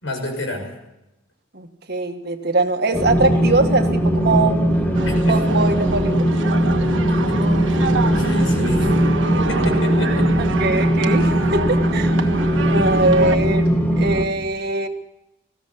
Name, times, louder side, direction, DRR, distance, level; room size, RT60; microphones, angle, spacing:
voice 1, 0.0-0.7 5.2-5.4 7.3-7.4 7.7-8.9 9.5-10.3, left 1 dB, 75° left, 5 dB, 5.9 m, -29 dB
voice 2, 1.5-4.6 5.3-6.3 10.4-12.2 12.7-13.7 14.0-14.9, right 2 dB, 55° right, 5 dB, 1.7 m, -21 dB
sound 1, 2.9-14.3, equal, 10° left, 2.2 m, -19 dB
sound 2, 4.9-13.4, right 3 dB, 70° right, 1.6 m, -27 dB
20.0 x 15.5 x 8.4 m, 0.94 s
head